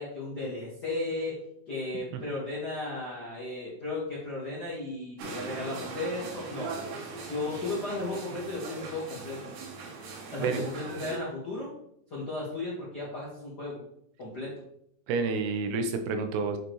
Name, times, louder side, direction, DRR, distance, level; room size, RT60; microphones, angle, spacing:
voice 1, 0.0-1.4 1.7-6.7 7.3-9.5 10.3-11.7 12.1-13.8 14.2-14.5, left 2 dB, 55° left, -7 dB, 1.1 m, -35 dB
sound 1, 5.2-11.2, right 4 dB, 65° right, 2.5 m, -40 dB
voice 2, 15.1-16.6, right 4 dB, 85° right, 7 dB, 2.9 m, -29 dB
8.5 x 4.9 x 3.1 m, 0.72 s
omnidirectional pair, 4.6 m